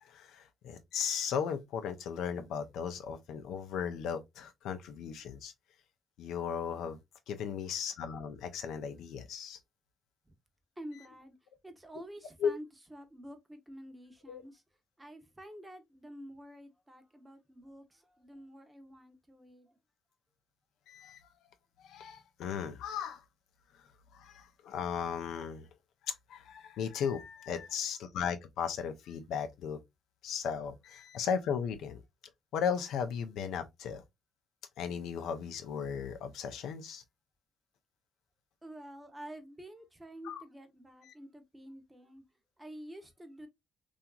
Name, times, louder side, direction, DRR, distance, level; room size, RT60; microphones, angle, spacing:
voice 1, 0.0-5.5 6.2-7.0 7.3-9.6 12.4-12.5 14.3-14.4 20.9-21.2 21.8-23.2 24.1-25.7 26.0-29.8 30.2-32.0 32.5-34.0 34.8-37.0 40.2-40.4 41.0-41.1, left 7 dB, 85° left, 0.4 m, -36 dB
voice 2, 10.8-11.4 11.6-12.6 12.9-14.6 15.0-19.8 38.6-42.2 42.6-43.5, right 1 dB, 15° right, 0.7 m, -49 dB
2.8 x 2.3 x 2.3 m
cardioid pair, 90°, 0 cm